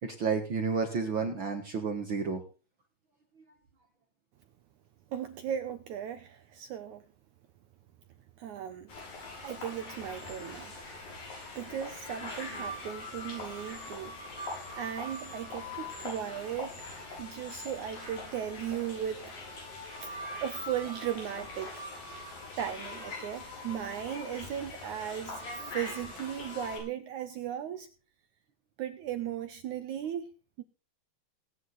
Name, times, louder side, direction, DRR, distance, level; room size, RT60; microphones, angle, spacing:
voice 1, 0.0-2.4, right 5 dB, 55° right, 1.3 m, -31 dB
voice 2, 5.1-7.0 8.4-8.9 9.4-11.1 11.5-14.1 14.7-19.2 20.0-20.1 20.4-21.8 22.6-25.5 25.7-27.9 28.8-30.3 30.6-30.7, right 9 dB, 75° right, 1.8 m, -37 dB
sound 1, 8.9-26.8, left 2 dB, 65° left, 7.9 m, -42 dB
18.5 x 9.7 x 4.0 m
omnidirectional pair, 4.4 m